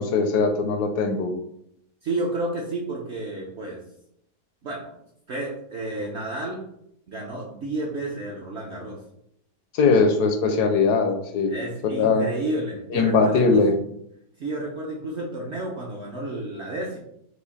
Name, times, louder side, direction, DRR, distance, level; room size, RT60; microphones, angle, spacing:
voice 1, 0.0-1.3 9.7-11.5 12.0-12.3 12.9-13.7, left 4 dB, 75° left, 6 dB, 1.1 m, -20 dB
voice 2, 2.0-3.8 4.6-4.9 5.3-6.6 7.1-9.0 11.5-13.7 14.4-17.0, right 2 dB, 60° right, -1 dB, 0.7 m, -31 dB
4.8 x 2.5 x 4.0 m, 0.74 s
omnidirectional pair, 1.8 m